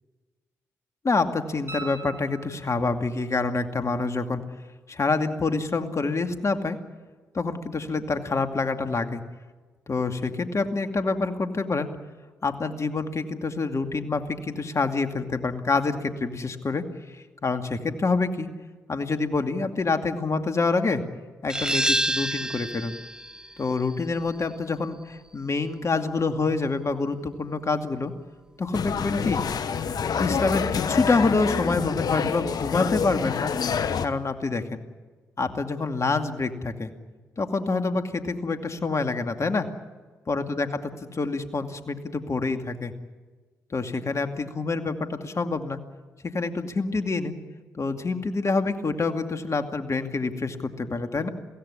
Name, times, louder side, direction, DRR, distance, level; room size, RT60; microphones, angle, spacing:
voice 1, 1.0-4.4 4.9-6.8 7.3-9.2 9.9-11.9 12.4-18.5 18.9-21.0 21.4-22.9 23.6-28.1 28.6-29.4 30.2-33.5 34.0-34.8 35.4-36.9 37.4-39.7 40.3-40.7 41.1-42.9 43.7-45.8 46.2-47.4 47.7-51.3, left 3 dB, 45° left, 6 dB, 2.4 m, -27 dB
sound 1, 1.7-3.0 5.8-5.9, right 4 dB, 35° right, 7.6 m, -40 dB
sound 2, 21.5-26.9, right 1 dB, 10° right, 1.0 m, -30 dB
sound 3, 28.7-34.1, left 6 dB, 65° left, 1.2 m, -27 dB
23.5 x 16.5 x 9.9 m, 1.4 s
hypercardioid pair, 40°, 7 cm